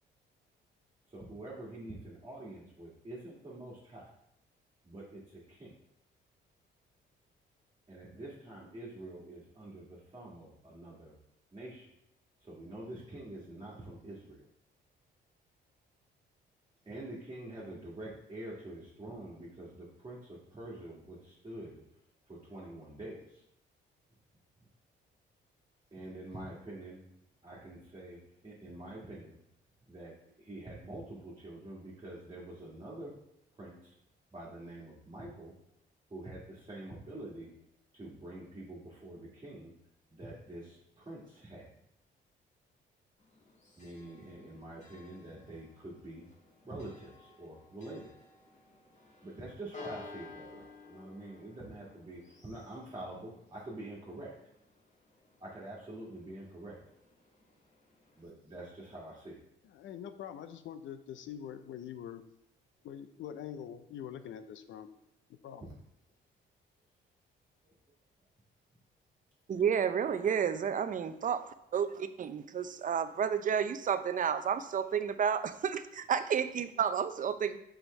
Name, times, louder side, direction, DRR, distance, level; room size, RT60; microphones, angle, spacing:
voice 1, 1.1-4.1 4.8-5.7 7.9-11.1 11.5-11.9 12.4-14.4 16.8-21.8 22.4-23.4 25.9-27.0 27.4-29.4 29.9-30.1 30.4-33.2 33.6-34.0 34.3-35.5 36.1-37.5 37.9-39.7 40.1-41.7 43.7-46.2 46.6-48.1 49.2-54.3 55.4-56.8 58.2-59.4, right 1 dB, 25° right, -6 dB, 1.8 m, -46 dB
Church bell, 43.2-58.3, left 4 dB, 35° left, 1.5 m, -55 dB
voice 2, 59.6-62.2 62.8-64.9 65.4-65.7, left 9 dB, 75° left, 10 dB, 0.6 m, -44 dB
voice 3, 69.5-71.4 71.7-77.6, right 7 dB, 40° right, 11 dB, 0.5 m, -31 dB
6.2 x 5.0 x 3.2 m, 0.80 s
cardioid pair, 90°, 20 cm